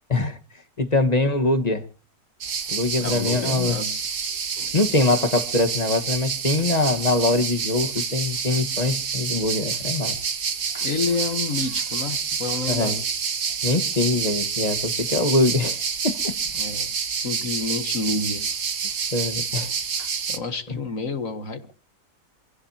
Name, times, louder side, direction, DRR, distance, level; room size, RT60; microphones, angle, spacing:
voice 1, 0.8-1.8 2.7-3.8 4.6-10.1 10.7-10.8 12.7-13.0 13.6-15.8 16.0-16.4 19.1-19.7 20.7-20.8, left 2 dB, 25° left, 1.5 m, -23 dB
sound 1, 2.4-20.4, right 6 dB, 85° right, 2.1 m, -28 dB
voice 2, 3.0-4.1 10.8-13.0 16.6-18.5 20.3-21.7, left 4 dB, 60° left, 2.1 m, -29 dB
27.0 x 16.0 x 2.8 m
omnidirectional pair, 1.6 m